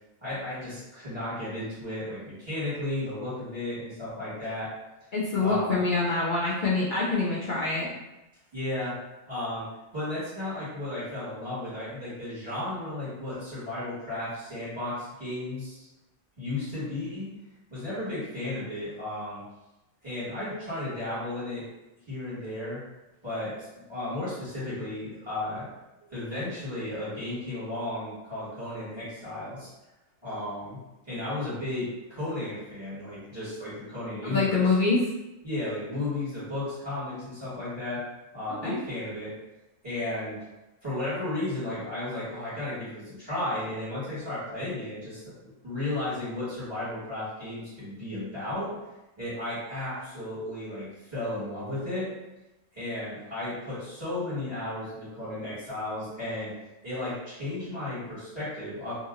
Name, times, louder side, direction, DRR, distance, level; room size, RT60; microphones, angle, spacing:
voice 1, 0.2-4.7 5.4-5.7 8.5-9.0 9.3-9.7 9.9-15.9 16.4-17.3 17.7-19.4 20.0-21.7 22.1-22.8 23.2-25.7 26.1-29.7 30.2-30.8 31.0-34.6 35.4-38.0 38.3-39.4 39.8-40.5 40.8-45.3 45.6-48.8 49.2-52.1 52.7-56.5 56.8-58.9, left 1 dB, 20° right, -12 dB, 1.6 m, -34 dB
voice 2, 5.1-7.9 34.2-35.1 38.5-38.8, left 3 dB, 60° left, -6 dB, 0.5 m, -25 dB
2.8 x 2.7 x 2.5 m, 0.98 s
omnidirectional pair, 1.4 m